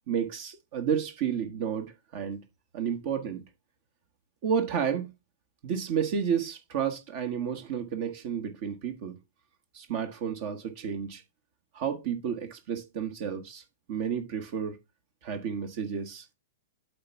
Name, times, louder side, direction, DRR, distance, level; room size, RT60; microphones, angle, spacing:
voice 1, 0.1-2.4 2.7-3.4 4.4-5.1 5.6-9.2 9.7-11.2 11.7-13.6 13.9-14.8 15.2-16.3, right 7 dB, 50° right, 1.4 m, -31 dB
8.4 x 3.5 x 5.8 m
hypercardioid pair, 110°, 0 cm